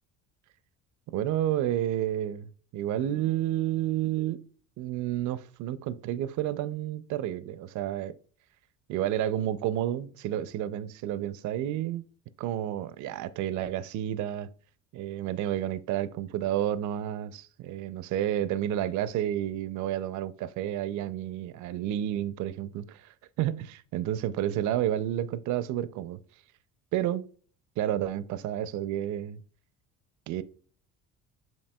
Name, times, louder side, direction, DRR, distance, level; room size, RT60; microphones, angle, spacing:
voice 1, 1.1-4.4 4.8-8.2 8.9-12.0 12.4-14.5 14.9-26.2 26.9-27.3 27.8-29.4 30.3-30.4, right 12 dB, 55° right, 0.5 m, -30 dB
7.1 x 2.7 x 2.2 m
supercardioid pair, 80°, 37 cm